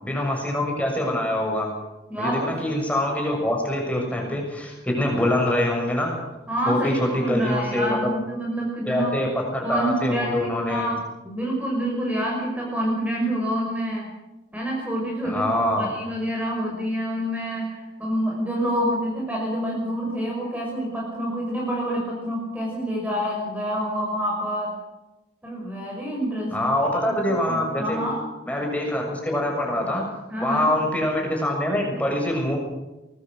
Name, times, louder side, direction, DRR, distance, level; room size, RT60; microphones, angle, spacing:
voice 1, 0.0-1.7 2.2-6.1 6.6-8.1 8.8-10.9 15.2-15.9 26.5-28.0 28.5-30.0 30.4-32.6, left 1 dB, 10° left, 0 dB, 6.7 m, -24 dB
voice 2, 2.1-2.5 6.5-9.1 9.6-14.1 14.5-24.7 25.4-26.7 27.0-28.2 30.3-30.7, equal, 10° right, -2 dB, 5.8 m, -27 dB
24.0 x 21.0 x 6.6 m, 1.0 s
head